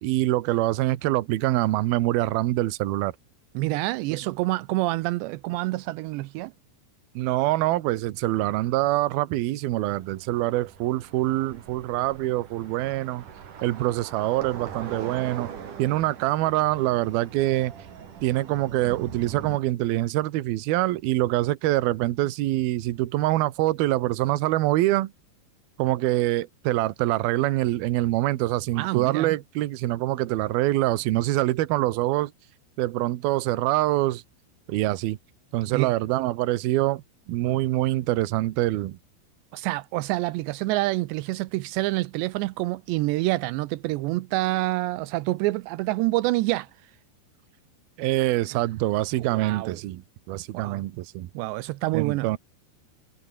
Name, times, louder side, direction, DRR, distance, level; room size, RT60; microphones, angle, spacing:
voice 1, 0.0-3.1 4.1-4.2 7.2-13.2 13.6-15.5 15.8-17.7 18.2-25.1 25.8-32.3 32.8-34.2 34.7-35.2 35.5-39.0 48.0-51.3 51.9-52.4, right 16 dB, 70° right, 2.8 m, -25 dB
voice 2, 3.6-6.5 28.8-29.4 35.7-35.9 39.5-46.7 49.2-49.8 50.5-50.8 51.3-52.4, right 19 dB, 85° right, 2.9 m, -27 dB
sound 1, 9.8-19.6, right 8 dB, 50° right, 3.9 m, -42 dB
omnidirectional pair, 5.1 m